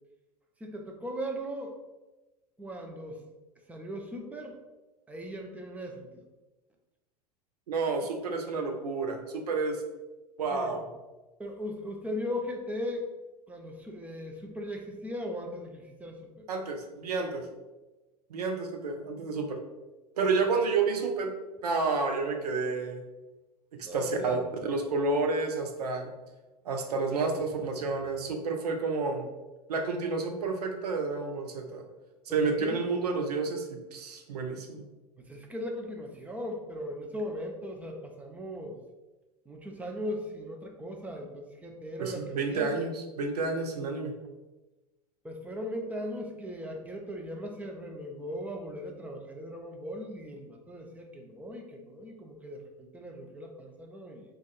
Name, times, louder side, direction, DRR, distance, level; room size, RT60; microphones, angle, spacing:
voice 1, 0.6-1.7 2.6-3.2 3.7-4.6 5.1-6.3 10.5-10.8 11.4-13.0 13.5-16.5 23.8-24.4 32.4-32.8 35.3-38.8 39.5-42.7 45.2-54.2, equal, 5° right, 1 dB, 0.3 m, -38 dB
voice 2, 7.7-9.8 10.4-10.8 16.5-17.4 18.3-19.6 20.2-21.3 21.6-23.0 23.8-26.1 26.6-29.3 29.7-31.8 32.3-34.9 42.0-44.1, right 4 dB, 70° right, 3 dB, 0.5 m, -30 dB
2.3 x 2.2 x 3.9 m, 1.1 s
figure-of-eight pair, 85°, 21 cm